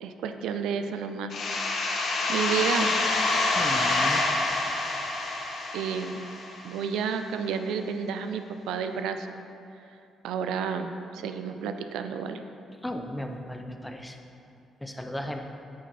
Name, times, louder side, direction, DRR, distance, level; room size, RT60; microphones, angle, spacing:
voice 1, 0.0-1.4 1.8-3.0 5.7-6.2 6.6-9.4 10.2-12.4, right 6 dB, 85° right, 8 dB, 0.4 m, -31 dB
sound 1, 1.3-6.8, left 2 dB, 60° left, 1.1 m, -27 dB
voice 2, 3.6-4.2 12.8-14.2 14.8-15.4, left 1 dB, 10° left, 4 dB, 0.8 m, -35 dB
8.9 x 5.2 x 4.2 m, 2.6 s
supercardioid pair, 70°, 0 cm